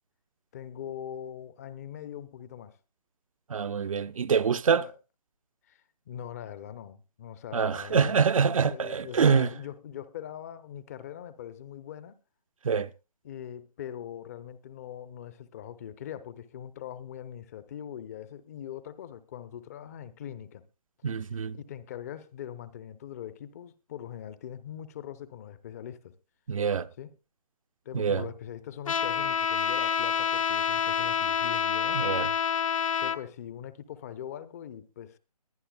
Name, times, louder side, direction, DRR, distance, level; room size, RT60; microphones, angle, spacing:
voice 1, 0.5-2.8 4.7-4.9 5.7-8.2 8.6-12.2 13.2-20.6 21.5-26.1 27.0-27.1 27.8-32.0 33.0-35.2, left 10 dB, 25° left, 0.7 m, -41 dB
voice 2, 3.5-4.8 7.5-9.5 12.6-12.9 21.0-21.6 26.5-26.9 27.9-28.3 31.9-32.3, right 6 dB, 55° right, 0.6 m, -25 dB
Trumpet, 28.9-33.2, left 8 dB, 55° left, 1.0 m, -27 dB
22.0 x 10.0 x 2.3 m
figure-of-eight pair, 150°, 20 cm